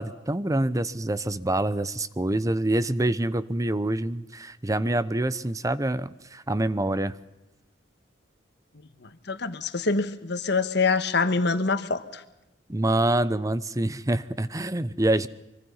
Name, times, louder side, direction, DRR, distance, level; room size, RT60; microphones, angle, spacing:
voice 1, 0.0-7.1 12.7-15.3, right 1 dB, 20° right, 15 dB, 0.8 m, -26 dB
voice 2, 9.0-12.2, left 4 dB, 65° left, 11 dB, 1.4 m, -25 dB
25.0 x 24.5 x 5.7 m, 0.94 s
head